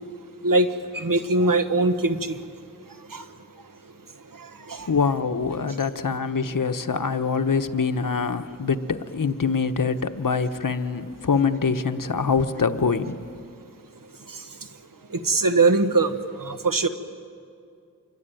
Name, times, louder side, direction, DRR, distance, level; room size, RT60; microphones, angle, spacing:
voice 1, 0.9-2.3 3.1-3.2 4.7-4.9 15.2-16.1 16.4-16.9, right 3 dB, 90° right, 8 dB, 1.4 m, -21 dB
voice 2, 4.9-13.2, left 5 dB, 80° left, 9 dB, 1.1 m, -24 dB
26.5 x 23.0 x 9.2 m, 2.4 s
wide cardioid pair, 50°, 32 cm